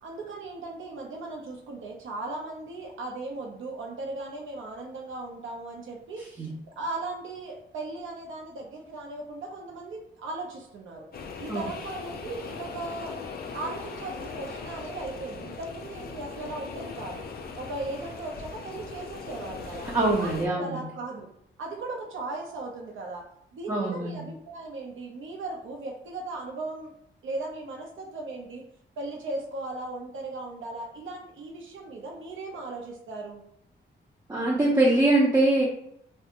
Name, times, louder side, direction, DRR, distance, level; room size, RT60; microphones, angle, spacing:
voice 1, 0.0-6.2 6.7-11.1 11.4-13.2 13.5-17.2 17.6-19.9 20.2-21.3 21.6-23.3 23.5-26.9 27.2-28.7 29.0-33.4, right 2 dB, 80° right, 0 dB, 0.6 m, -37 dB
voice 2, 6.2-6.5 11.5-11.7 19.8-20.9 23.7-24.3 34.3-35.6, right 2 dB, 15° right, -5 dB, 0.5 m, -24 dB
sound 1, 11.1-20.5, left 5 dB, 50° left, 0.4 m, -39 dB
2.4 x 2.2 x 2.8 m, 0.73 s
wide cardioid pair, 120°, 20 cm